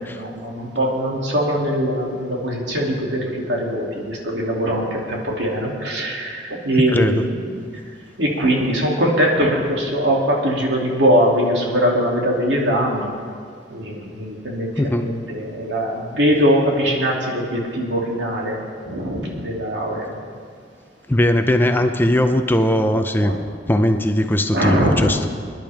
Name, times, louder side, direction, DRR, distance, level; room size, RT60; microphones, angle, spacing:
voice 1, 0.2-7.6 8.2-13.1 13.7-18.6 18.9-20.1 23.2-23.4 24.5-25.1, equal, 80° right, -2 dB, 2.8 m, -21 dB
voice 2, 6.9-7.2 14.8-15.1 21.1-23.4 23.7-25.3, left 1 dB, 10° left, 6 dB, 0.6 m, -19 dB
24.5 x 10.5 x 3.6 m, 2.1 s
head